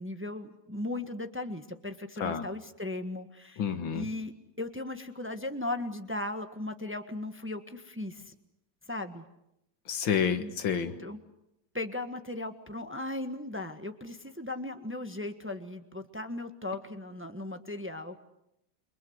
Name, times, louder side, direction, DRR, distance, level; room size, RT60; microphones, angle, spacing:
voice 1, 0.0-3.6 3.9-8.3 8.9-9.2 10.4-10.5 11.0-11.2 11.7-18.2, left 2 dB, 5° right, 7 dB, 1.3 m, -37 dB
voice 2, 3.6-4.1 9.9-11.0, left 7 dB, 90° left, 9 dB, 2.3 m, -29 dB
29.0 x 24.5 x 8.0 m, 0.85 s
omnidirectional pair, 2.1 m